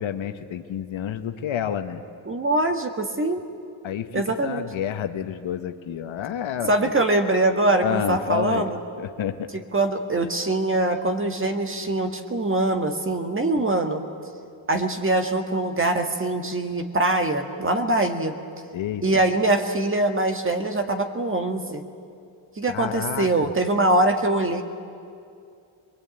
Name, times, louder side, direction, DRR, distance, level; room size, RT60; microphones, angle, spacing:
voice 1, 0.0-2.0 3.8-6.9 7.8-8.7 9.0-9.5 18.7-19.2 22.7-23.5, left 9 dB, 70° left, 8 dB, 1.4 m, -29 dB
voice 2, 2.3-3.4 4.1-4.6 6.7-8.8 9.7-14.0 14.7-18.3 19.0-21.8 22.6-24.6, right 2 dB, 25° right, 6 dB, 1.7 m, -23 dB
23.0 x 22.0 x 9.0 m, 2.5 s
cardioid pair, 115°, 48 cm